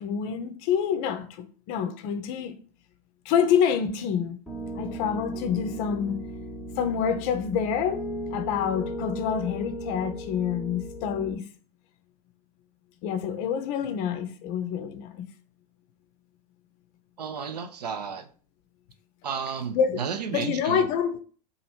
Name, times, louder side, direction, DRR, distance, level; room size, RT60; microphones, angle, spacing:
voice 1, 0.0-2.5 3.3-4.4 4.8-6.2 6.8-8.0 8.3-11.4 13.0-15.3 19.7-21.2, left 7 dB, 40° left, 0.5 m, -27 dB
Piano, 4.5-11.3, equal, ahead, 0.7 m, -36 dB
voice 2, 17.2-18.2 19.2-20.8, right 6 dB, 70° right, 0.5 m, -32 dB
3.0 x 2.5 x 4.3 m
figure-of-eight pair, 85°, 21 cm